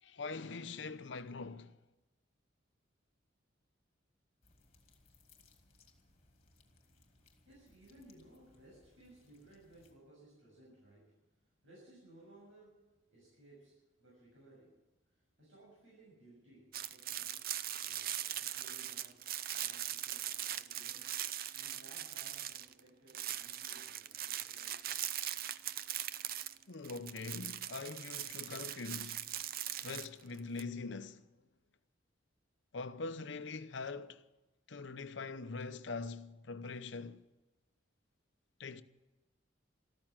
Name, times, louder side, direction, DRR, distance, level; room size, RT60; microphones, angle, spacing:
voice 1, 0.0-1.8 26.7-29.3 29.8-31.3 32.7-34.2 34.7-37.2 38.6-38.8, left 4 dB, 65° left, 0.8 m, -43 dB
sound 1, 4.4-9.9, left 3 dB, 35° left, 2.2 m, -68 dB
voice 2, 6.6-24.9 28.1-28.3, right 1 dB, 80° right, 6.9 m, -61 dB
sound 2, 16.7-22.8 23.1-30.6, right 11 dB, 50° right, 0.5 m, -40 dB
13.5 x 13.5 x 7.5 m
head